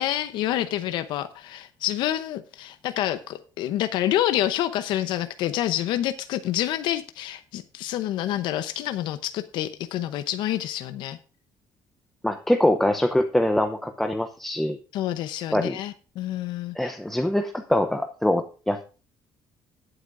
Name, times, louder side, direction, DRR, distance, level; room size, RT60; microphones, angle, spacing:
voice 1, 0.0-11.2 14.9-16.9, left 12 dB, 80° left, 10 dB, 0.8 m, -28 dB
voice 2, 12.2-14.8 15.5-15.8 16.7-18.8, left 1 dB, 5° left, 5 dB, 0.7 m, -23 dB
18.5 x 8.0 x 2.6 m, 0.36 s
cardioid pair, 170°, 8 cm